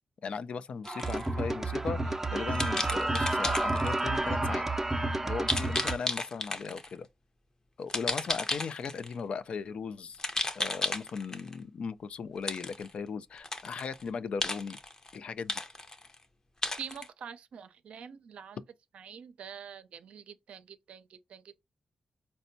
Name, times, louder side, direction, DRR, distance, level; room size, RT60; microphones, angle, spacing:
voice 1, 0.2-4.7 5.2-7.1 7.8-10.2 10.6-14.8 15.1-15.6, left 5 dB, 65° left, 0.4 m, -37 dB
sound 1, 0.8-1.3 2.5-4.0 5.5-6.9 7.9-9.1 10.1-11.5 12.5-12.9 13.4-14.0 14.4-15.2 15.5-16.2 16.6-17.1, left 2 dB, 30° left, 0.7 m, -33 dB
sound 2, 0.9-6.0, right 2 dB, 20° right, 0.5 m, -30 dB
voice 2, 16.8-18.6 18.9-21.6, right 7 dB, 80° right, 0.4 m, -46 dB
4.2 x 2.1 x 2.6 m
cardioid pair, 55°, 2 cm